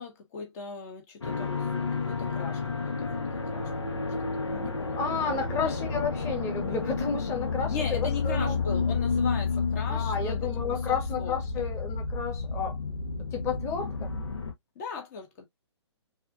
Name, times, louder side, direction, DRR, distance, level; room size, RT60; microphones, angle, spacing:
voice 1, 0.0-4.1 4.5-5.7 7.7-11.7 14.7-15.5, left 5 dB, 35° left, 1.4 m, -39 dB
sound 1, 1.2-14.5, left 4 dB, 70° left, 1.6 m, -31 dB
voice 2, 4.9-8.6 9.9-12.8 13.3-14.1, left 5 dB, 20° left, 1.5 m, -32 dB
6.4 x 2.8 x 2.6 m
figure-of-eight pair, 125°, 15 cm